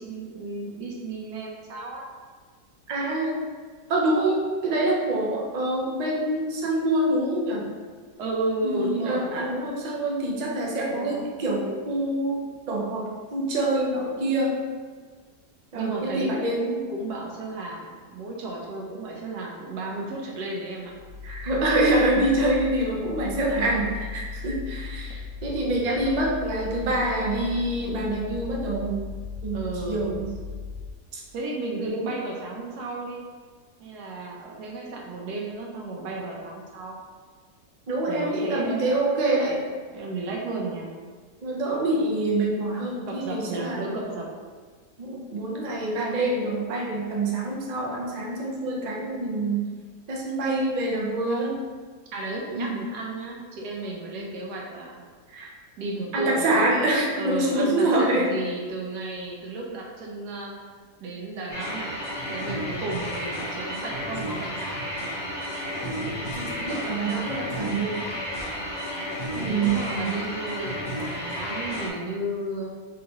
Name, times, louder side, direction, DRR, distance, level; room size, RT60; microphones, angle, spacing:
voice 1, 0.0-2.0 8.2-9.5 10.8-11.2 15.7-16.3 16.9-20.9 26.1-26.2 29.5-30.1 31.3-33.2 33.8-37.0 38.1-39.1 39.9-40.9 43.1-44.3 52.1-55.0 55.8-56.6 57.2-60.5 61.0-61.9 62.3-64.8 69.4-72.7, right 2 dB, 80° right, -1 dB, 1.3 m, -33 dB
voice 2, 2.9-3.4 3.9-7.7 8.6-14.6 15.7-16.9 21.2-29.0 29.4-29.6 29.9-30.3 31.1-31.2 31.9-32.1 37.9-39.6 41.4-44.0 45.0-49.6 50.1-51.6 52.5-52.8 55.3-55.5 56.1-58.4 66.0-68.0 69.3-70.2, right 1 dB, 60° right, -2 dB, 0.4 m, -26 dB
sound 1, 20.8-30.9, left 5 dB, 65° left, 0.7 m, -37 dB
sound 2, 61.5-71.9, equal, 35° left, 0.4 m, -32 dB
4.0 x 3.6 x 2.9 m, 1.5 s
omnidirectional pair, 1.7 m